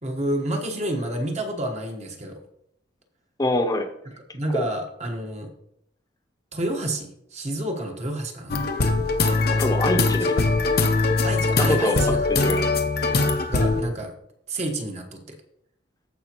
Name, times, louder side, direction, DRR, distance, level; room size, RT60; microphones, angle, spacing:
voice 1, 0.0-2.4 4.1-5.5 6.5-8.6 10.2-10.4 11.2-12.5 13.5-14.1 14.5-15.4, right 1 dB, 35° right, 2 dB, 1.3 m, -29 dB
voice 2, 3.4-3.9 4.5-4.7 9.6-10.5 11.6-12.0 12.3-12.7, left 1 dB, 20° left, 5 dB, 0.9 m, -24 dB
sound 1, 8.5-13.8, left 3 dB, 55° left, 0.7 m, -22 dB
14.5 x 5.0 x 3.1 m, 0.76 s
head